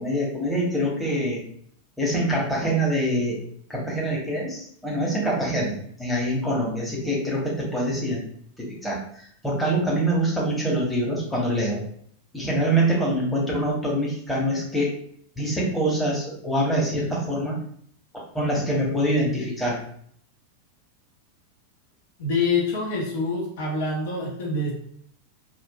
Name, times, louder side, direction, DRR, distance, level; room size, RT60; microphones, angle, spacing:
voice 1, 0.0-1.4 2.0-3.4 3.7-8.2 8.6-9.0 9.4-11.8 12.3-14.9 15.4-17.5 18.3-19.8, right 1 dB, 5° left, -5 dB, 1.2 m, -25 dB
voice 2, 22.2-24.7, left 3 dB, 55° left, -2 dB, 0.9 m, -26 dB
4.3 x 2.4 x 2.4 m, 0.63 s
figure-of-eight pair, 90°, 0 cm